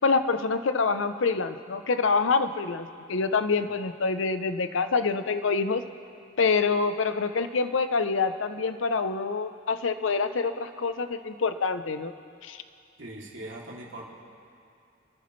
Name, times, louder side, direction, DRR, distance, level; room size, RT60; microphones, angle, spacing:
voice 1, 0.0-5.8 6.4-12.1 12.4-12.6, left 4 dB, 75° left, 10 dB, 0.6 m, -26 dB
voice 2, 13.0-14.1, right 1 dB, 70° right, -4 dB, 2.7 m, -41 dB
28.0 x 10.0 x 3.2 m, 2.4 s
head